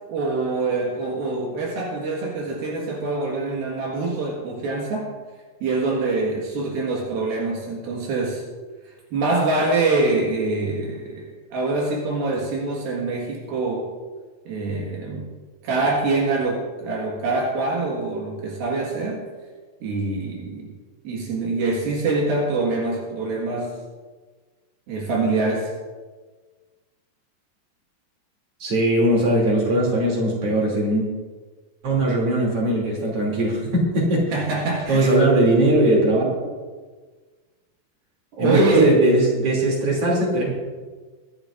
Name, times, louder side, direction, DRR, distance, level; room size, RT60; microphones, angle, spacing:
voice 1, 0.0-5.1 5.6-8.4 9.1-13.9 14.5-15.3 15.6-19.2 19.8-20.7 21.1-23.8 24.9-25.7 34.3-35.2 38.3-38.9, right 3 dB, 75° right, -2 dB, 3.4 m, -25 dB
voice 2, 28.6-31.1 31.8-34.4 34.9-36.3 38.4-40.5, right 1 dB, 40° right, -2 dB, 3.5 m, -19 dB
23.5 x 10.5 x 2.5 m, 1.4 s
omnidirectional pair, 4.3 m